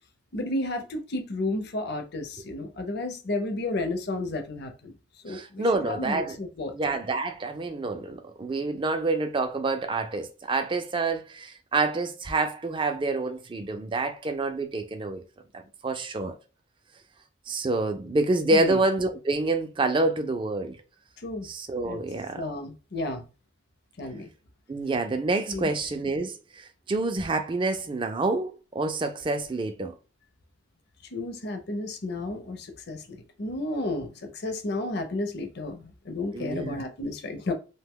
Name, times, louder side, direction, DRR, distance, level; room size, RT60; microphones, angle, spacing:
voice 1, 0.3-4.9 5.2-6.7 18.5-18.8 21.2-21.5 21.8-22.0 22.4-23.2 24.0-24.3 25.5-25.7 31.0-37.5, left 2 dB, 50° left, 0.5 m, -32 dB
voice 2, 5.3-6.4 6.7-15.2 15.8-16.4 17.5-20.8 21.4-22.4 24.7-29.9 36.3-36.8, right 3 dB, 25° right, 0.3 m, -27 dB
2.7 x 2.1 x 3.5 m
head